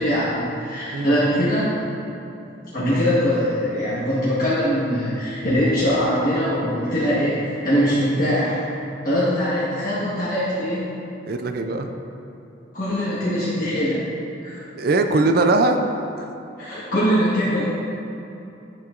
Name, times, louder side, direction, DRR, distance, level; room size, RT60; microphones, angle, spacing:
voice 1, 0.0-1.7 2.7-8.6 9.0-10.9 12.7-14.0 14.4-14.6 16.6-17.6, equal, 50° left, -11 dB, 1.2 m, -22 dB
voice 2, 11.3-11.9 14.7-15.8, right 2 dB, 55° right, 6 dB, 0.4 m, -20 dB
8.5 x 6.4 x 2.5 m, 2.9 s
head